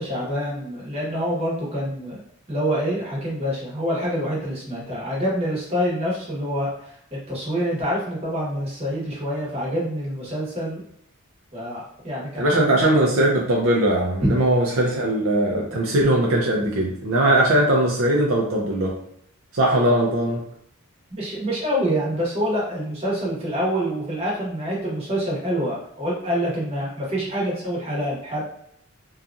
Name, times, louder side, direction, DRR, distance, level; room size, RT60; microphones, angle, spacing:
voice 1, 0.0-2.2 2.5-10.8 11.5-12.7 14.2-14.4 21.1-28.5, equal, 30° right, -5 dB, 1.0 m, -26 dB
voice 2, 12.4-18.9 19.5-20.4, right 1 dB, 65° right, -2 dB, 0.5 m, -20 dB
2.8 x 2.3 x 2.4 m, 0.71 s
head